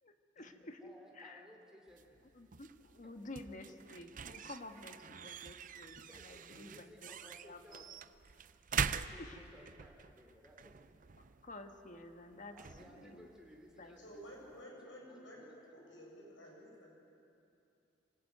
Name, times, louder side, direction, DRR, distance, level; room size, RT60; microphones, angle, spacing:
voice 1, 0.0-1.5 2.3-7.1 7.4-7.8 9.2-9.7 11.2-13.3 13.8-14.0, left 2 dB, 45° left, 5 dB, 1.6 m, -51 dB
voice 2, 0.8-2.2 3.0-3.1 3.7-3.8 6.1-7.9 9.1-11.0 12.5-16.0, equal, 5° right, 0 dB, 3.3 m, -59 dB
sound 1, 1.9-14.6, right 6 dB, 45° right, 0.6 m, -45 dB
voice 3, 14.0-15.5 15.7-16.9, equal, 90° left, -2 dB, 7.6 m, -53 dB
26.5 x 16.5 x 9.4 m, 2.7 s
head